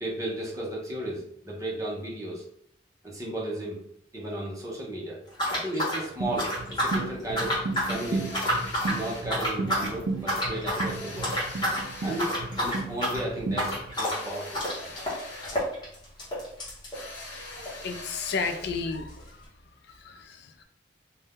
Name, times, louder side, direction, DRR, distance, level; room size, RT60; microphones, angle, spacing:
voice 1, 0.0-2.4 3.0-3.8 4.1-5.2 5.5-7.6 7.9-8.4 8.9-11.3 12.0-14.7, right 1 dB, 15° right, -3 dB, 0.8 m, -34 dB
sound 1, 5.3-7.1 7.3-8.0 8.3-9.0 9.3-9.9 10.3-10.9 11.2-11.8 12.1-17.8 18.1-18.2 18.4-18.5 19.2-19.3, equal, 25° left, 1.0 m, -29 dB
sound 2, 6.2-13.9, right 3 dB, 70° right, 0.4 m, -34 dB
sound 3, 7.9-9.3 10.8-12.5 13.9-15.7 16.9-18.7, left 2 dB, 90° left, 0.9 m, -42 dB
voice 2, 17.8-19.5 19.8-20.6, left 4 dB, 60° left, 6 dB, 0.3 m, -33 dB
2.6 x 2.2 x 3.4 m, 0.67 s
head